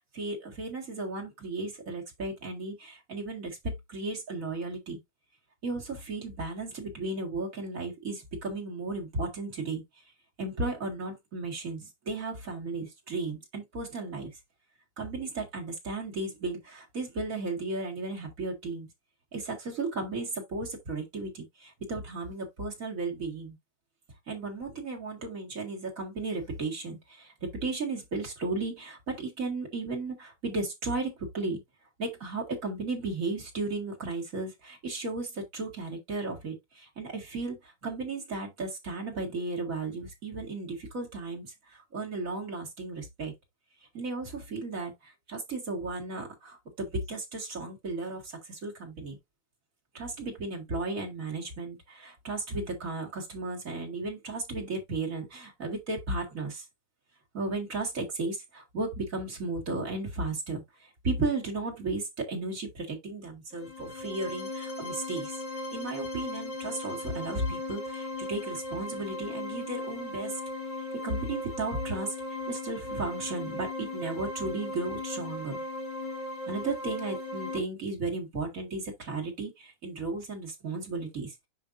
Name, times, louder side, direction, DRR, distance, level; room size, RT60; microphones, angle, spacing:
voice 1, 0.1-3.6 3.9-5.0 5.6-9.8 10.4-14.3 15.0-18.9 19.3-23.6 24.3-31.6 32.0-43.3 43.9-49.2 49.9-56.6 57.3-65.4 65.7-70.4 71.0-75.6 76.5-81.5, right 3 dB, 35° right, 1.3 m, -35 dB
sound 1, 63.5-77.6, left 2 dB, 45° left, 1.6 m, -37 dB
9.1 x 5.3 x 2.6 m
omnidirectional pair, 4.4 m